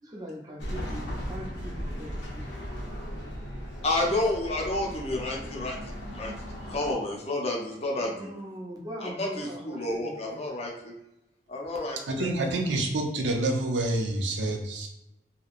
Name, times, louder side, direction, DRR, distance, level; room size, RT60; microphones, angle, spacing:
voice 1, 0.0-3.8 6.2-6.3 6.6-6.7 7.9-10.5, equal, 20° right, -2 dB, 0.6 m, -42 dB
sound 1, 0.6-6.9, equal, 85° left, 0.8 m, -37 dB
voice 2, 3.8-6.3 6.7-8.3 9.0-10.9 11.5-12.3, left 2 dB, 35° left, -1 dB, 0.6 m, -30 dB
voice 3, 12.1-14.9, right 2 dB, 85° right, 2 dB, 0.6 m, -27 dB
2.9 x 2.8 x 2.5 m, 0.91 s
head